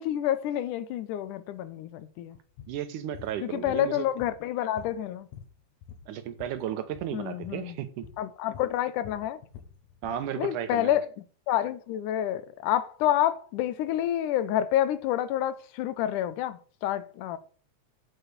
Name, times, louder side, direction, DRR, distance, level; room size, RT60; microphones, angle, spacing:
voice 1, 0.0-2.4 3.4-5.3 7.1-7.8 8.2-9.4 10.4-17.4, left 12 dB, 90° left, 2.2 m, -28 dB
sound 1, 2.6-2.8 3.1-3.3 3.7-4.5 4.8-6.6 6.9-7.1 7.4-7.6 8.0-8.3 8.5-10.2, left 8 dB, 75° left, 2.8 m, -46 dB
voice 2, 2.7-4.0 6.1-8.1 10.0-10.9, right 10 dB, 80° right, 2.5 m, -34 dB
8.3 x 5.9 x 6.6 m
omnidirectional pair, 3.6 m